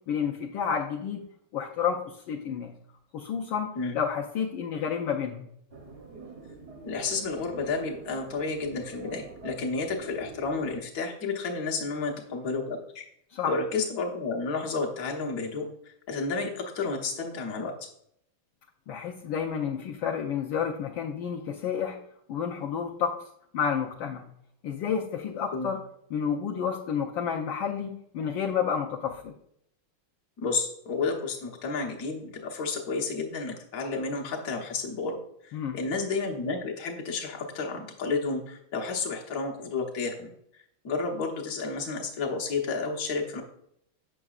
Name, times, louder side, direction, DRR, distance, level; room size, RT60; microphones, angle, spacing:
voice 1, 0.1-1.2 1.5-2.7 3.1-5.5 13.3-13.6 18.9-22.0 22.3-23.1 23.5-24.3 24.6-25.8 26.1-29.3 35.5-35.8, left 7 dB, 75° left, 0 dB, 1.3 m, -30 dB
sound 1, 5.7-10.8, right 3 dB, 60° right, 0.6 m, -45 dB
voice 2, 6.8-13.0 13.4-17.9 25.5-25.7 30.4-35.2 35.4-40.3 40.8-43.4, left 4 dB, 50° left, 0 dB, 1.3 m, -31 dB
7.8 x 6.0 x 2.4 m, 0.70 s
omnidirectional pair, 2.3 m